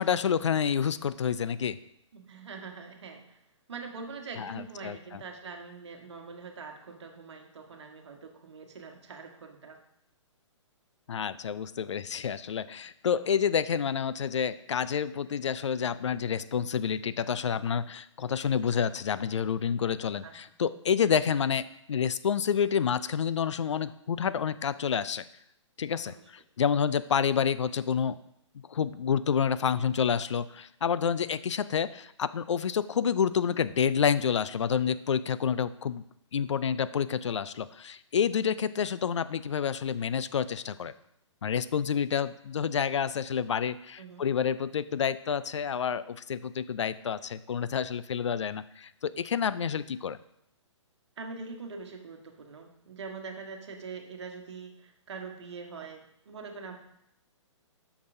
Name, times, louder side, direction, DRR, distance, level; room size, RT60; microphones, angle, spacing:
voice 1, 0.0-1.8 4.4-5.0 11.1-25.2 25.8-26.1 26.6-28.2 28.7-36.0 36.3-40.9 41.4-50.2, left 7 dB, 70° left, 15 dB, 0.4 m, -28 dB
voice 2, 2.1-3.4 3.7-9.8 20.2-20.4 26.0-26.3 44.0-44.3 51.2-56.8, right 4 dB, 60° right, 3 dB, 1.3 m, -43 dB
9.5 x 6.0 x 2.6 m, 0.76 s
figure-of-eight pair, 125°, 16 cm